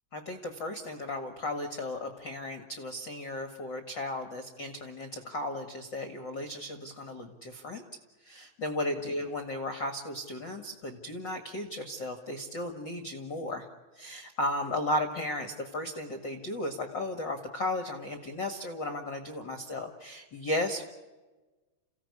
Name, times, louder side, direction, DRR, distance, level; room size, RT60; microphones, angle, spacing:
voice 1, 0.1-7.8 8.2-13.7 13.9-20.8, left 1 dB, 40° left, 8 dB, 1.8 m, -35 dB
29.5 x 16.5 x 9.7 m, 1.2 s
omnidirectional pair, 4.5 m